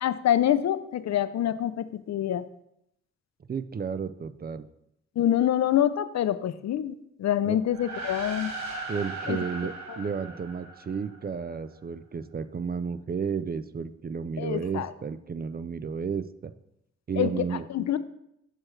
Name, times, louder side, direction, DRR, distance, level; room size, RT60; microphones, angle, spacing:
voice 1, 0.0-2.5 5.2-8.5 9.3-9.4 9.9-10.0 14.4-14.9 17.2-17.5 17.7-18.0, left 11 dB, 65° left, 14 dB, 0.5 m, -26 dB
voice 2, 3.5-4.6 7.4-7.6 8.9-16.5 17.1-17.7, right 6 dB, 35° right, 13 dB, 0.4 m, -32 dB
sound 1, 7.6-11.3, right 2 dB, 65° right, 1.3 m, -38 dB
6.3 x 6.2 x 3.2 m, 0.78 s
cardioid pair, 55°, 30 cm